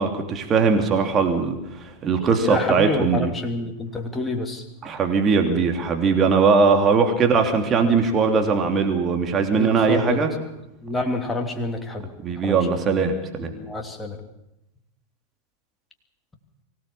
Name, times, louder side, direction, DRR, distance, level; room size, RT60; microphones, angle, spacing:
voice 1, 0.0-3.3 4.8-10.3 12.2-13.5, right 5 dB, 25° right, 4 dB, 2.9 m, -20 dB
voice 2, 2.4-4.6 9.5-10.3 10.8-12.1 12.4-12.6 13.5-14.2, left 2 dB, 10° left, 3 dB, 3.0 m, -28 dB
24.0 x 17.0 x 7.2 m, 0.90 s
figure-of-eight pair, 90°, 0 cm